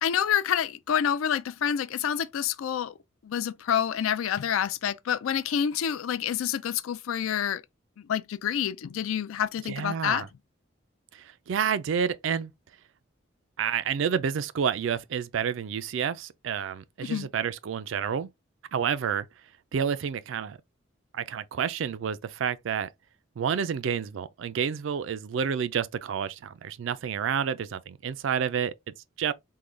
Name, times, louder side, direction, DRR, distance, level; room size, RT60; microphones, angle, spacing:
voice 1, 0.0-2.9 3.2-7.6 8.1-10.3 17.0-17.3, left 8 dB, 90° left, 0.4 m, -28 dB
voice 2, 9.6-10.3 11.1-12.5 13.6-18.3 18.7-19.3 19.7-20.6 21.1-22.9 23.4-28.7 29.2-29.3, right 7 dB, 70° right, 0.4 m, -29 dB
3.7 x 2.2 x 3.1 m
head